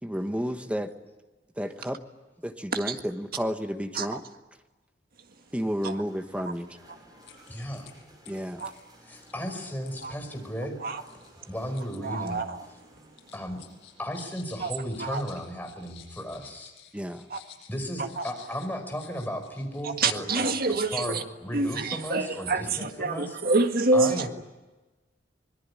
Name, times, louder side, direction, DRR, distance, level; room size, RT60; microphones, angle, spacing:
voice 1, 0.0-0.9 1.6-2.0 2.4-4.2 5.5-6.8 8.3-8.6 16.9-17.3, equal, 5° right, 1.4 m, -31 dB
sound 1, 5.3-14.1, right 1 dB, 20° right, 6.6 m, -56 dB
sound 2, 6.8-6.9 7.2-7.9 8.2-12.0 12.3-12.8 13.2-19.8 20.1-20.8, left 10 dB, 70° left, 7.1 m, -53 dB
voice 2, 7.5-7.9 9.0-10.8 11.5-12.4 13.3-13.6 14.0-16.7 17.7-20.5 20.9-23.4 23.9-24.3, equal, 10° left, 5.1 m, -35 dB
voice 3, 12.0-12.7 14.6-14.7 15.0-15.2 17.3-17.4 18.2-18.3 19.8-21.2 21.5-24.3, right 3 dB, 55° right, 1.8 m, -27 dB
25.0 x 22.0 x 10.0 m
head